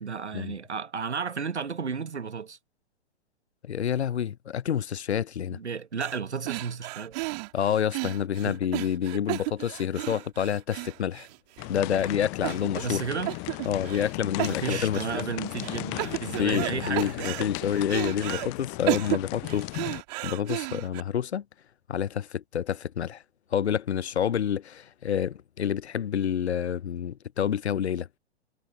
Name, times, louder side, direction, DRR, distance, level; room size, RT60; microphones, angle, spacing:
voice 1, 0.0-2.6 5.5-7.2 8.4-8.6 12.8-13.3 14.5-17.2, right 5 dB, 80° right, 1.2 m, -33 dB
voice 2, 3.6-5.6 7.5-11.3 11.7-13.0 13.7-15.3 16.4-19.7 20.2-21.4 21.9-23.2 23.5-28.1, left 9 dB, 75° left, 0.6 m, -28 dB
sound 1, 6.0-6.2 6.5-11.6 12.0-12.1 12.4-13.0 13.3-14.1 14.4-15.2 15.6-16.7 17.0-18.5 18.9-21.0, right 25 dB, 40° right, 2.5 m, -33 dB
sound 2, 11.6-20.0, left 37 dB, 25° left, 0.7 m, -36 dB
figure-of-eight pair, 115°, 33 cm